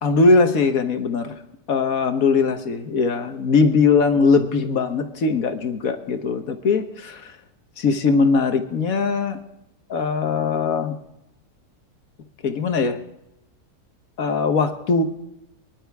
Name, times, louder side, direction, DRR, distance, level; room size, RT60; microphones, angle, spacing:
voice 1, 0.0-1.4 1.7-7.4 7.8-9.4 9.9-10.9 12.4-13.0 14.2-15.0, left 4 dB, 60° left, 8 dB, 1.5 m, -20 dB
23.0 x 11.0 x 3.5 m, 0.85 s
omnidirectional pair, 1.8 m